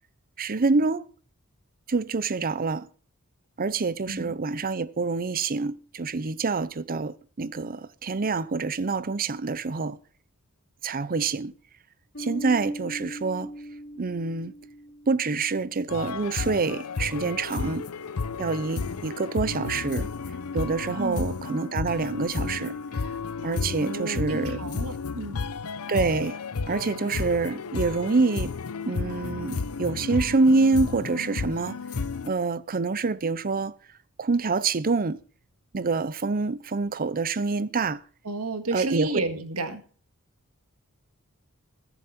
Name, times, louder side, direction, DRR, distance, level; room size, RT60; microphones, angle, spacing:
voice 1, 0.4-1.0 1.9-2.9 3.6-10.0 10.8-11.5 12.2-13.5 14.0-14.5 15.1-17.9 18.4-20.1 20.5-22.8 23.4-24.6 25.9-26.4 26.7-28.6 28.9-31.8 32.2-33.8 34.2-35.2 35.7-38.0 38.7-39.1, right 4 dB, 40° right, 0.7 m, -26 dB
Bass guitar, 12.1-15.6, right 1 dB, 50° left, 3.6 m, -40 dB
sound 1, 15.9-32.3, left 4 dB, 75° left, 0.7 m, -32 dB
voice 2, 21.0-21.3 23.8-25.4 38.3-39.8, right 2 dB, 80° right, 1.9 m, -32 dB
21.0 x 7.2 x 4.3 m
head